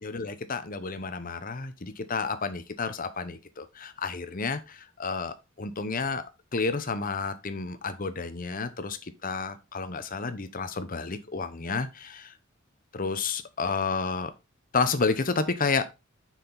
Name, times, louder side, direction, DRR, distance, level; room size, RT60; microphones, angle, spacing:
voice 1, 0.0-12.3 12.9-14.3 14.7-15.8, left 4 dB, 45° left, 11 dB, 0.9 m, -31 dB
7.0 x 5.9 x 4.0 m, 0.26 s
head